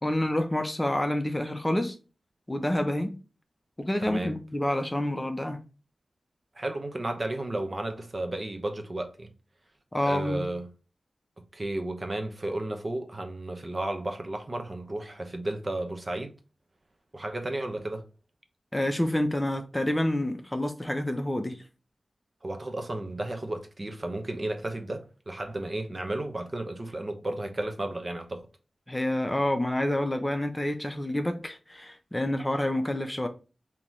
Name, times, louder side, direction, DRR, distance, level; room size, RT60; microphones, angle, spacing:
voice 1, 0.0-2.0 2.5-3.1 3.8-5.6 9.9-10.4 18.7-21.6 28.9-33.3, left 1 dB, 15° left, 0.7 m, -28 dB
voice 2, 4.1-4.4 6.6-9.3 10.0-10.7 11.5-16.3 17.1-18.1 22.4-28.5, right 1 dB, 40° right, 0.8 m, -33 dB
4.0 x 2.9 x 3.0 m
wide cardioid pair, 85°, 0 cm